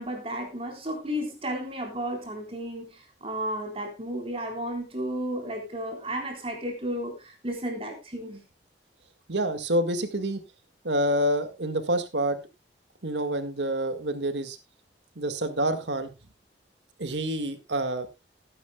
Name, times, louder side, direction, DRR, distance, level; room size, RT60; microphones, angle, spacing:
voice 1, 0.0-8.4, equal, 30° right, 3.9 m, -33 dB
voice 2, 9.3-10.4 10.8-12.4 13.0-14.6 15.2-16.1 17.0-18.1, right 1 dB, 80° right, 1.9 m, -27 dB
19.0 x 9.9 x 2.3 m
head